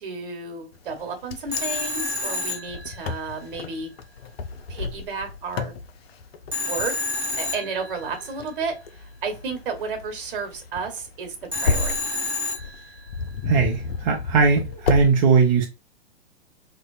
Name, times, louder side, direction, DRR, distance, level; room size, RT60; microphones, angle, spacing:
voice 1, 0.0-3.9 4.7-5.7 6.6-6.9 7.4-11.3 11.6-11.9, right 4 dB, 55° right, 1.0 m, -32 dB
Wind, 0.9-15.1, left 4 dB, 65° left, 0.5 m, -32 dB
Telephone, 1.5-3.4 6.5-8.3 11.5-13.2, left 2 dB, 5° right, 0.9 m, -29 dB
voice 2, 13.5-15.7, right 5 dB, 35° right, 0.5 m, -19 dB
2.6 x 2.1 x 2.4 m
figure-of-eight pair, 110°, 33 cm